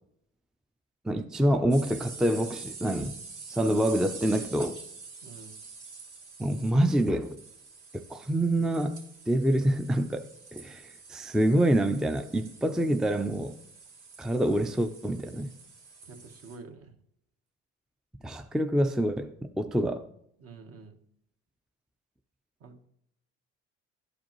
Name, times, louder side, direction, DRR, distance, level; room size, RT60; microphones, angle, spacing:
voice 1, 1.0-3.2 3.5-4.8 6.4-7.4 7.9-13.6 14.2-15.5 18.2-20.1, right 1 dB, ahead, 0.4 m, -26 dB
sound 1, 1.7-16.6, right 4 dB, 90° right, 3.0 m, -46 dB
voice 2, 5.2-5.6 16.0-16.9 20.4-21.0 22.6-22.9, right 4 dB, 50° right, 1.3 m, -48 dB
11.5 x 5.0 x 3.0 m
supercardioid pair, 80°, 30 cm